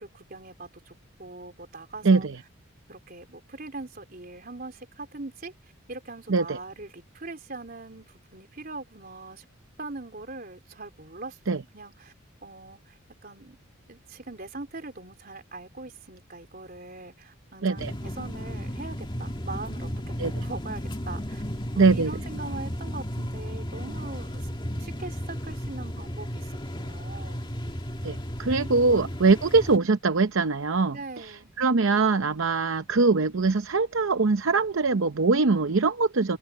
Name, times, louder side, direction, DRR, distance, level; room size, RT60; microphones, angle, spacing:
voice 1, 0.0-2.3 2.9-9.5 9.8-12.1 12.4-13.6 13.9-21.4 21.8-24.5 24.8-27.5 30.9-31.5, right 3 dB, 45° right, 3.8 m, -42 dB
voice 2, 2.0-2.4 6.3-6.6 11.5-11.6 17.6-17.9 20.2-20.4 21.7-22.1 28.0-36.4, right 4 dB, 65° right, 0.7 m, -23 dB
sound 1, 17.8-29.8, equal, 20° left, 2.2 m, -34 dB
open air
head